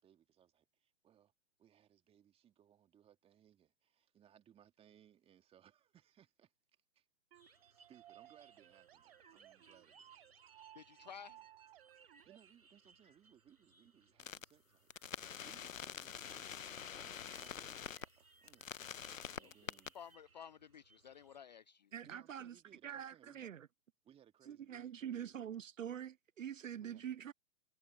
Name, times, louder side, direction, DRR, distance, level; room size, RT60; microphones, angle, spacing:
voice 1, 0.0-1.3 1.6-7.1 7.4-10.2 11.0-11.1 12.2-18.7 19.4-20.0 22.0-23.6 24.0-25.6 26.8-27.1, right 10 dB, 15° right, 2.4 m, -67 dB
sound 1, 7.3-12.4, right 13 dB, 45° right, 5.7 m, -61 dB
sound 2, 7.3-21.4, right 4 dB, 80° right, 6.5 m, -68 dB
voice 2, 10.7-11.4 19.4-19.5 19.9-21.9, left 7 dB, 30° left, 0.5 m, -53 dB
sound 3, 14.2-14.4 14.9-18.1 18.5-19.9, left 8 dB, 65° left, 1.0 m, -46 dB
voice 3, 21.9-22.5 22.8-23.7 24.5-27.3, right 9 dB, 65° right, 0.7 m, -45 dB
figure-of-eight pair, 125°, 42 cm